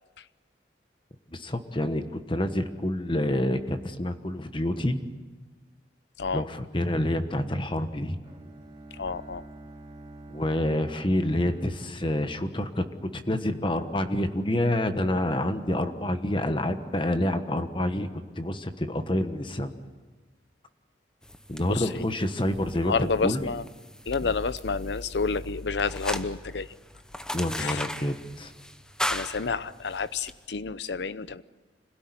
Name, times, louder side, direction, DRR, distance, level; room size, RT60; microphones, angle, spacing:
voice 1, 1.3-5.0 6.3-8.2 10.3-18.1 18.4-19.8 21.5-23.4 27.3-28.5, left 1 dB, 30° left, 9 dB, 1.3 m, -28 dB
Bowed string instrument, 8.2-13.2, right 2 dB, 20° right, 4.3 m, -47 dB
voice 2, 8.9-9.4 21.7-22.1 22.8-23.6 24.1-26.7 27.6-27.9 29.1-31.4, left 4 dB, 75° left, 16 dB, 0.7 m, -29 dB
sound 1, 21.2-30.4, left 1 dB, 5° left, 0.8 m, -38 dB
26.0 x 17.0 x 9.8 m, 1.3 s
head